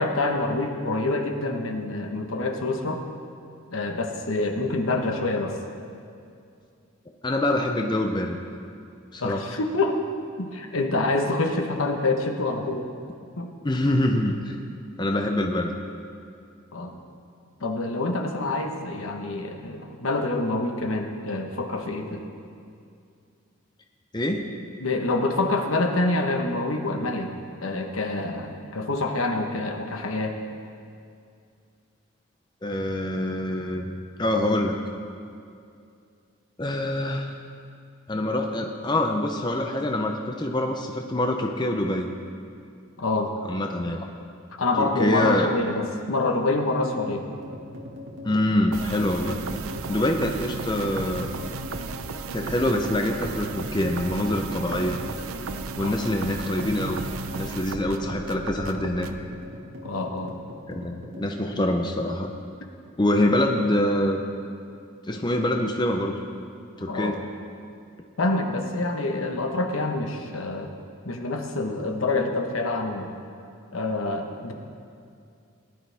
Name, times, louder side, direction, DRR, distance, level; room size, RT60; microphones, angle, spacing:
voice 1, 0.0-3.0 3.7-5.6 9.2-10.0 10.4-12.9 13.4-13.5 16.7-17.0 17.6-22.2 24.8-27.3 27.6-30.4 43.0-43.3 44.6-47.3 55.8-55.9 59.8-60.3 66.9-67.1 68.2-70.7 71.0-73.1 73.7-74.5, left 2 dB, 80° left, 3 dB, 1.2 m, -26 dB
voice 2, 7.2-8.4 9.1-9.4 13.6-14.6 15.0-15.7 24.1-24.4 32.6-33.9 34.2-34.7 36.6-37.3 38.1-42.1 43.5-44.1 44.8-45.5 48.2-49.4 49.9-51.3 52.3-55.0 55.8-57.0 57.4-59.1 60.7-62.3 63.0-64.2 65.1-66.2 66.8-67.2, left 1 dB, 20° left, 3 dB, 0.6 m, -25 dB
sound 1, 47.1-61.4, left 1 dB, 60° right, 1.9 m, -41 dB
sound 2, 48.7-59.2, right 4 dB, 85° right, 0.6 m, -35 dB
18.5 x 11.0 x 3.5 m, 2.4 s
head